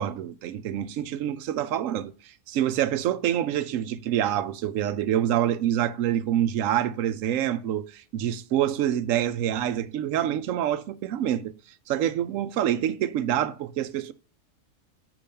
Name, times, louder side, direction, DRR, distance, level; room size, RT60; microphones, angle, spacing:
voice 1, 0.0-2.1 2.5-11.5 11.9-14.1, right 11 dB, 85° right, 1.0 m, -26 dB
8.5 x 3.0 x 5.6 m
omnidirectional pair, 1.3 m